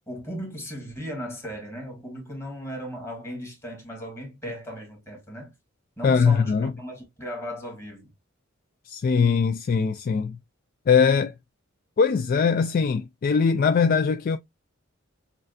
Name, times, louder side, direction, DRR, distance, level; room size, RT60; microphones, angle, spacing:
voice 1, 0.1-5.5 6.0-8.1, equal, 15° left, 1.8 m, -37 dB
voice 2, 6.0-6.7 8.9-10.4 10.9-11.3 12.0-14.4, left 5 dB, 45° left, 0.3 m, -21 dB
6.5 x 2.5 x 2.5 m
head